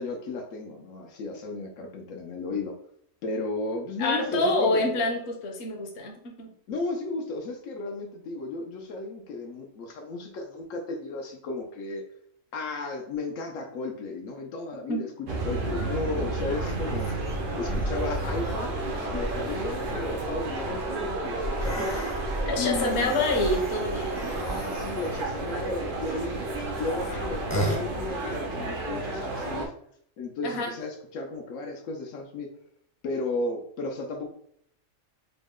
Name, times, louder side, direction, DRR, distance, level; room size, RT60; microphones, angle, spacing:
voice 1, 0.0-2.7 3.2-4.8 6.7-12.0 12.5-17.1 17.5-18.7 19.1-22.1 22.6-23.2 24.2-26.5 26.8-29.7 30.2-32.5 33.0-34.3, left 3 dB, 85° left, 2 dB, 1.0 m, -34 dB
voice 2, 4.0-6.5 14.9-15.0 22.4-24.4 30.4-30.7, left 2 dB, 60° left, 2 dB, 1.0 m, -27 dB
sound 1, 15.3-29.7, right 2 dB, 75° right, 1.1 m, -32 dB
sound 2, 16.2-24.2, right 5 dB, 55° right, 0.6 m, -45 dB
sound 3, 16.4-28.1, equal, 20° left, 0.5 m, -36 dB
3.9 x 2.1 x 3.6 m, 0.66 s
omnidirectional pair, 1.3 m